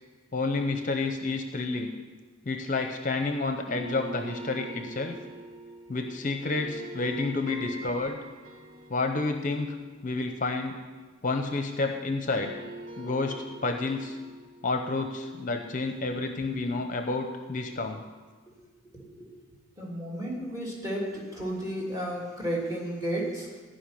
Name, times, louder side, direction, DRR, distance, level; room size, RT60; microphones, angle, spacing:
voice 1, 0.3-1.9 2.5-5.2 5.9-8.2 8.9-9.8 10.0-10.8 11.2-12.6 13.0-14.2 14.6-18.0, left 3 dB, 40° left, 5 dB, 0.8 m, -30 dB
sound 1, 3.7-11.8 12.1-17.0, right 1 dB, 80° right, 2.3 m, -45 dB
voice 2, 18.8-19.3 19.8-23.5, right 1 dB, 20° right, -3 dB, 3.1 m, -33 dB
15.0 x 5.6 x 10.0 m, 1.4 s
head